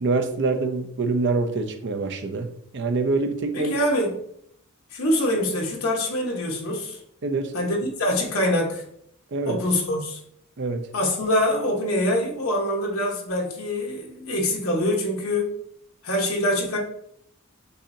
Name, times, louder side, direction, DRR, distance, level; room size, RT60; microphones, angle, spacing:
voice 1, 0.0-3.7 7.2-7.5 9.3-9.6 10.6-10.9, right 3 dB, 55° right, 0.5 m, -25 dB
voice 2, 3.5-4.1 4.9-7.0 7.5-8.8 9.5-10.2 10.9-15.5 16.0-16.8, left 1 dB, 75° left, 1.1 m, -24 dB
6.5 x 2.7 x 2.7 m
head